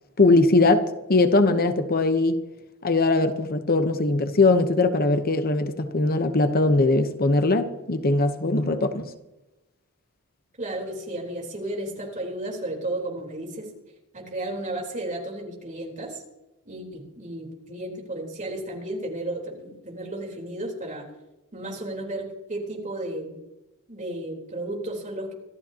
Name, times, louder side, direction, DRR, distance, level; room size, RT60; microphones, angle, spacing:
voice 1, 0.2-2.4 2.8-9.1, left 2 dB, 45° left, 0.9 m, -21 dB
voice 2, 10.6-13.7 14.1-16.2 16.7-21.1 21.5-23.3 23.9-25.3, right 1 dB, 35° right, 3.8 m, -33 dB
26.0 x 13.0 x 2.9 m
head